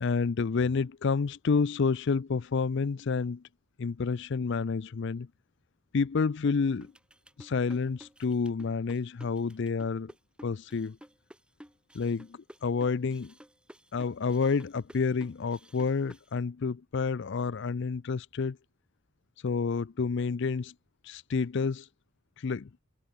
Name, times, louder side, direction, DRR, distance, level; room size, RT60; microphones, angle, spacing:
voice 1, 0.0-3.4 3.8-5.3 5.9-6.9 7.4-10.1 10.4-11.0 11.9-13.3 13.9-18.6 19.4-20.7 21.1-21.8 22.4-22.7, left 5 dB, 55° left, 0.4 m, -29 dB
sound 1, 6.8-16.3, equal, 5° right, 6.9 m, -53 dB
head